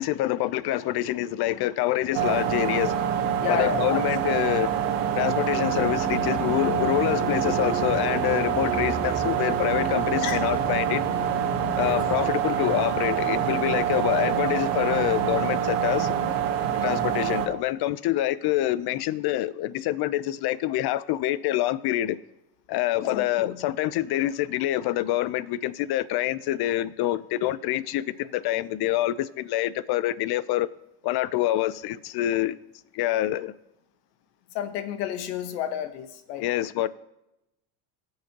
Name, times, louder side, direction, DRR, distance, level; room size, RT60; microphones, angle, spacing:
voice 1, 0.0-3.1 3.5-4.7 5.2-11.0 11.8-16.1 16.8-22.2 22.7-30.7 31.0-32.6 32.9-33.5 36.4-36.9, left 14 dB, 55° left, 0.6 m, -26 dB
sound 1, 2.1-17.5, right 9 dB, 60° right, 1.3 m, -26 dB
voice 2, 3.4-4.0 10.2-10.6 11.8-12.0 16.6-17.0 23.0-23.7 34.5-36.4, left 9 dB, 80° left, 1.1 m, -31 dB
sound 2, 5.5-12.3, right 1 dB, 5° left, 0.8 m, -37 dB
18.5 x 6.7 x 2.9 m
supercardioid pair, 80°, 46 cm